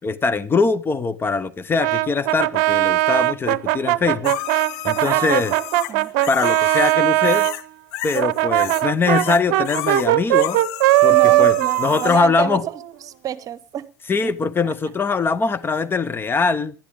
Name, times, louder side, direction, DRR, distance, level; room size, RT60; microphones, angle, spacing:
voice 1, 0.0-4.3 4.8-5.5 6.3-7.5 8.0-10.6 11.0-12.6 14.1-16.7, left 4 dB, 25° left, 1.0 m, -22 dB
Brass instrument, 1.8-7.5 8.1-12.9, right 18 dB, 60° right, 0.7 m, -19 dB
sound 1, 4.2-7.7 7.9-8.9 9.1-12.2 15.8-15.9, left 16 dB, 60° left, 0.9 m, -32 dB
voice 2, 5.0-6.1 11.1-13.9 14.2-14.3 14.6-14.7, right 10 dB, 40° right, 1.2 m, -29 dB
19.5 x 12.0 x 3.6 m
hypercardioid pair, 75°, 9 cm